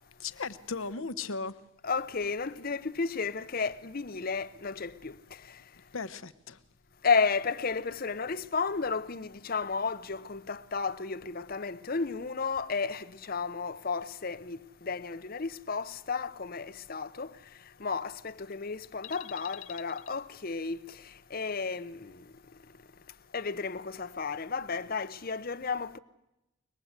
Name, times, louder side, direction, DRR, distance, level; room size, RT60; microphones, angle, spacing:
voice 1, 0.2-1.6 5.9-6.6 19.0-19.8, left 4 dB, 75° left, 1.0 m, -37 dB
voice 2, 1.8-5.6 7.0-22.3 23.3-26.0, left 4 dB, 45° left, 0.8 m, -33 dB
23.5 x 20.5 x 8.1 m
head